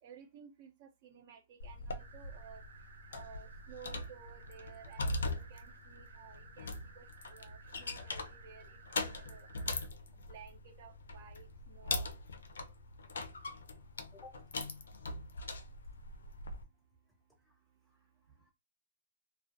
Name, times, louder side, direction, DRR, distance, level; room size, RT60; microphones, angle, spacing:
voice 1, 0.0-2.6 3.1-9.5 10.1-12.1, right 7 dB, 50° right, 0.5 m, -55 dB
sound 1, 1.6-16.6, left 2 dB, 80° left, 0.5 m, -42 dB
sound 2, 2.0-9.9, right 5 dB, 90° right, 1.0 m, -58 dB
voice 2, 14.1-14.5 14.9-15.1 17.4-17.6 17.9-18.1 18.4-18.5, left 3 dB, 5° left, 0.4 m, -57 dB
2.3 x 2.1 x 2.5 m
hypercardioid pair, 130°, 0 cm